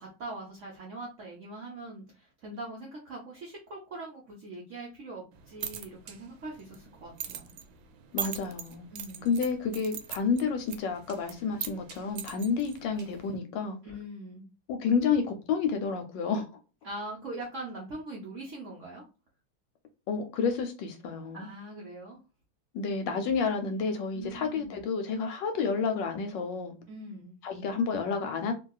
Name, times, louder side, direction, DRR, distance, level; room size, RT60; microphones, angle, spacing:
voice 1, 0.0-7.5 8.9-9.3 13.8-14.5 16.8-19.0 21.3-22.2 24.1-24.8 26.9-27.4, right 2 dB, 60° right, 0.8 m, -42 dB
sound 1, 5.3-13.4, right 10 dB, 80° right, 1.3 m, -42 dB
voice 2, 8.1-8.9 9.2-13.8 14.7-16.5 20.1-21.5 22.7-26.7 27.4-28.5, left 5 dB, 70° left, 1.2 m, -30 dB
3.0 x 2.9 x 2.2 m
omnidirectional pair, 2.2 m